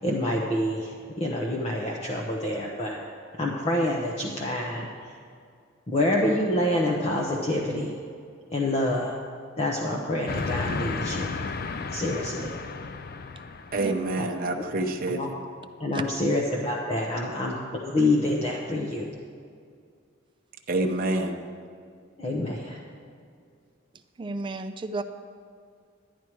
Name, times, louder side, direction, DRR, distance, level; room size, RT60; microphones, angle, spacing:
voice 1, 0.0-3.0 3.4-4.9 5.9-8.0 8.5-9.1 9.6-11.3 11.9-12.5 15.1-15.3 15.8-19.0 22.2-22.8, left 1 dB, 30° left, -2 dB, 0.9 m, -27 dB
Train, 10.3-14.2, left 4 dB, 50° left, 0.5 m, -33 dB
voice 2, 13.7-15.4 20.7-21.4, right 2 dB, 45° right, 3 dB, 0.8 m, -27 dB
voice 3, 24.2-25.0, right 3 dB, 25° right, 8 dB, 0.4 m, -32 dB
11.0 x 10.5 x 4.6 m, 2.2 s
head